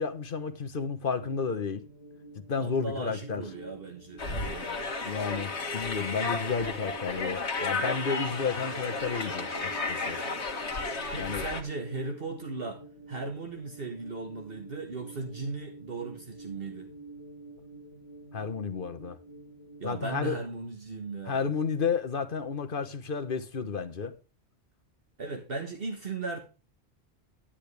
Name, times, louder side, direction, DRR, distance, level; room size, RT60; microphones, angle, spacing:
voice 1, 0.0-1.8 2.5-3.4 5.0-10.2 11.1-11.5 18.3-19.2 19.8-20.4 21.2-24.2, left 5 dB, 55° left, 1.2 m, -32 dB
sound 1, 1.2-20.4, right 2 dB, 25° right, 6.1 m, -49 dB
voice 2, 2.6-4.8 11.1-12.8 13.1-16.9 19.8-21.4 25.2-26.4, right 3 dB, 60° right, 1.6 m, -37 dB
sound 2, 4.2-11.6, left 3 dB, 85° left, 1.6 m, -33 dB
10.5 x 10.0 x 3.4 m
omnidirectional pair, 1.1 m